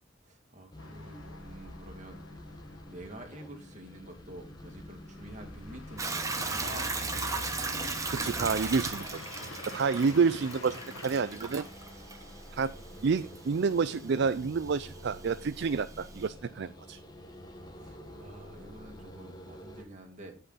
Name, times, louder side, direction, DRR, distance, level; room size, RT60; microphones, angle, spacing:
voice 1, 0.2-2.6 2.9-7.5 17.8-20.4, right 1 dB, 35° right, 3 dB, 2.2 m, -48 dB
sound 1, 0.7-19.8, left 1 dB, 20° left, 1.4 m, -47 dB
sound 2, 0.8-14.5 14.8-14.9 15.3-15.9, left 3 dB, 85° left, 1.9 m, -48 dB
Hiss / Toilet flush / Trickle dribble, 6.0-16.3, right 4 dB, 15° right, 1.2 m, -38 dB
voice 2, 8.1-9.1 9.7-11.7 12.5-12.7 13.0-17.0, right 5 dB, 55° right, 13 dB, 0.4 m, -29 dB
16.5 x 5.8 x 4.1 m, 0.37 s
head